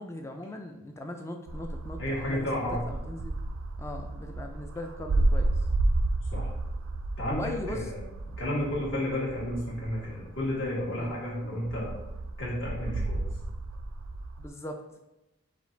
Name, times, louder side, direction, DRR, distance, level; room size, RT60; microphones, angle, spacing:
voice 1, 0.0-3.4 3.8-5.5 7.3-7.8 11.0-11.2 14.4-14.8, left 1 dB, 15° left, 4 dB, 0.3 m, -39 dB
sound 1, 1.5-11.2 11.6-14.5, right 2 dB, 90° right, 0.4 m, -32 dB
voice 2, 2.0-2.9 6.3-6.5 7.2-8.0 8.4-11.9 12.4-13.2, left 1 dB, 55° left, -5 dB, 1.5 m, -32 dB
5.0 x 2.4 x 3.9 m, 0.96 s
head